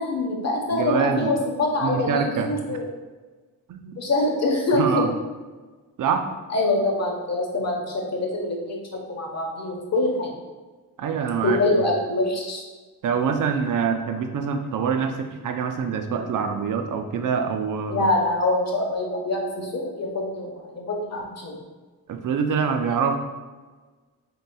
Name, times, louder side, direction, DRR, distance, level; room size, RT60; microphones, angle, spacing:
voice 1, 0.0-2.8 4.0-4.8 6.5-8.8 9.1-10.3 11.4-12.6 17.9-21.6, left 2 dB, 40° left, 0 dB, 1.1 m, -24 dB
voice 2, 0.7-1.3 1.8-2.8 3.7-4.0 4.8-5.1 6.0-6.2 11.0-11.6 13.0-18.1 22.1-23.2, right 6 dB, 50° right, 6 dB, 0.6 m, -25 dB
4.1 x 3.8 x 2.3 m, 1.3 s
supercardioid pair, 60°, 40 cm